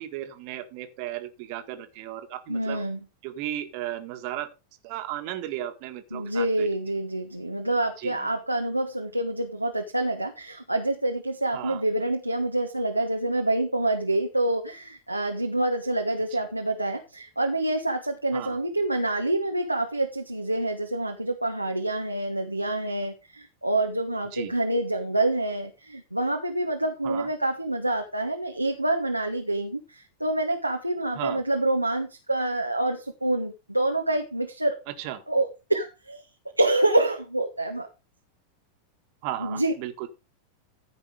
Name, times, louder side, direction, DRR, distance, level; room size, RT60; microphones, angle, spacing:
voice 1, 0.0-2.8 3.2-4.5 4.8-6.7 8.0-8.2 11.5-11.8 18.3-18.6 24.3-24.5 27.0-27.3 31.2-31.4 35.0-35.2 39.2-40.1, right 13 dB, 45° right, 7 dB, 1.9 m, -35 dB
voice 2, 2.5-3.0 6.1-34.8 35.3-36.2 36.6-37.9 39.4-39.7, right 1 dB, 85° right, 3 dB, 1.3 m, -27 dB
15.0 x 5.5 x 5.0 m, 0.28 s
figure-of-eight pair, 90°, 0 cm